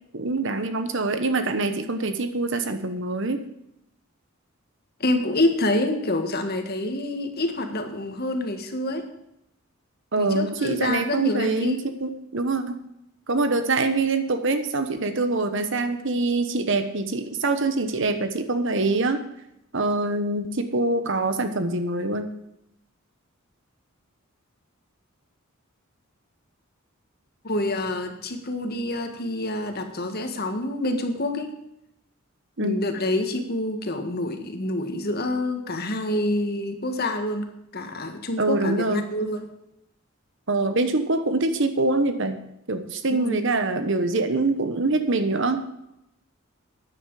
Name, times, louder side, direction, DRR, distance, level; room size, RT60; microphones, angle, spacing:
voice 1, 0.1-3.4 10.1-12.8 13.3-19.2 19.7-22.3 32.6-32.8 38.4-39.1 40.5-42.4 42.7-45.7, right 3 dB, 60° right, 9 dB, 1.2 m, -24 dB
voice 2, 5.0-9.1 10.2-11.8 27.4-31.5 32.6-37.4 37.7-39.5 43.1-43.4, left 1 dB, 50° left, 6 dB, 1.8 m, -27 dB
13.5 x 10.0 x 4.9 m, 0.82 s
head